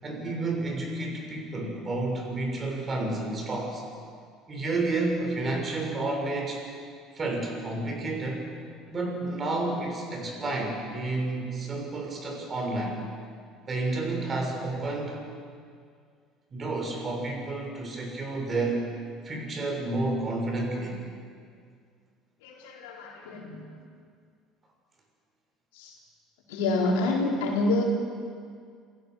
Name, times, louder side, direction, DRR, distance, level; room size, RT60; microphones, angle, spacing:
voice 1, 0.0-3.8 4.5-6.6 7.1-8.5 8.9-13.0 13.7-15.2 16.5-18.9 19.2-21.0, right 2 dB, 35° right, 1 dB, 6.6 m, -30 dB
voice 2, 22.4-23.7 25.7-25.9 26.5-27.8, left 2 dB, 80° left, -1 dB, 4.1 m, -27 dB
27.5 x 16.5 x 6.5 m, 2.2 s
hypercardioid pair, 70°, 0 cm